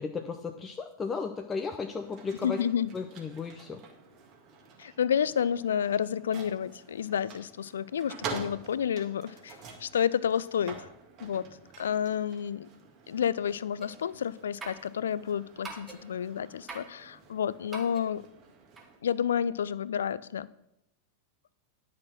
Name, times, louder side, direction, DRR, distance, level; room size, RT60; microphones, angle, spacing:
voice 1, 0.0-2.6 2.9-3.8, left 5 dB, 20° left, 4 dB, 0.6 m, -35 dB
sound 1, 1.8-19.0, right 5 dB, 40° right, 1.8 m, -47 dB
voice 2, 2.4-2.9 4.8-10.9 11.2-11.5 11.8-12.7 13.1-18.2 19.0-20.5, left 8 dB, 65° left, 18 dB, 0.4 m, -30 dB
sound 2, 13.8-14.1 14.6-14.9 15.6-16.1 16.7-17.0 17.7-18.1 18.8-18.9, right 3 dB, 20° right, 1.7 m, -43 dB
10.5 x 6.4 x 6.0 m, 0.83 s
figure-of-eight pair, 90°, 0 cm